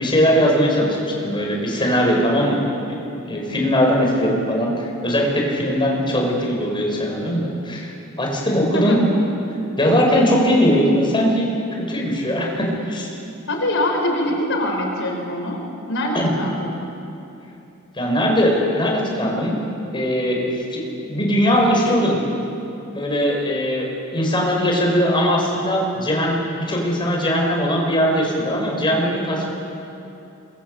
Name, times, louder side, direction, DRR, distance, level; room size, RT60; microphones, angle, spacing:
voice 1, 0.0-2.6 3.3-9.0 9.8-13.1 16.1-16.3 17.9-19.6 19.9-20.8 21.1-22.2 22.9-29.5, equal, 25° left, -1 dB, 5.8 m, -20 dB
voice 2, 8.4-9.0 13.5-15.6 15.9-16.7, left 1 dB, 60° left, 1 dB, 5.0 m, -23 dB
26.5 x 22.5 x 8.0 m, 2.9 s
head